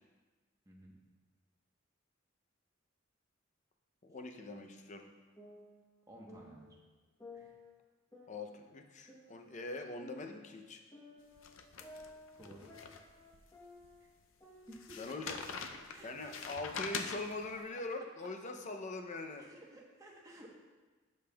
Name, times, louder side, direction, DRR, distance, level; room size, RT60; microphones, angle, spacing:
voice 1, 4.0-5.1 8.3-10.8 15.0-15.5 16.0-19.4, left 2 dB, 40° left, 5 dB, 0.5 m, -42 dB
sound 1, 4.7-6.8 7.2-9.6 10.0-14.1 14.4-16.4, left 2 dB, 20° left, 1.0 m, -56 dB
voice 2, 6.1-6.7 7.3-7.5 12.4-12.7 14.0-14.1 14.7-15.3 15.9-17.0 18.2-18.3 19.4-20.5, right 1 dB, 15° right, -2 dB, 1.0 m, -54 dB
sound 2, 11.4-13.4 13.8-13.9 14.7-17.6, left 5 dB, 85° left, 0.5 m, -44 dB
12.0 x 5.3 x 2.3 m, 1.3 s
head